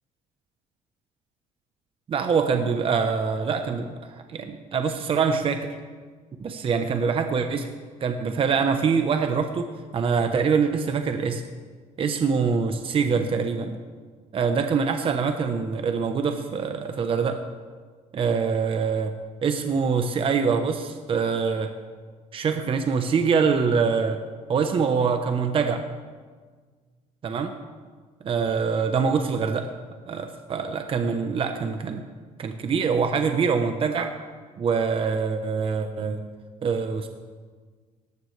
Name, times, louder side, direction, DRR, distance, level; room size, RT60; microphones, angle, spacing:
voice 1, 2.1-5.7 6.4-7.7 8.0-11.4 12.0-13.8 14.3-17.4 18.1-19.1 19.4-21.7 22.3-24.2 24.5-25.8 27.2-27.5 28.2-29.7 30.1-32.0 32.4-34.1 34.6-36.2 36.6-37.1, right 5 dB, 40° right, 6 dB, 0.9 m, -24 dB
17.5 x 13.5 x 3.3 m, 1.5 s
cardioid pair, 115°, 15 cm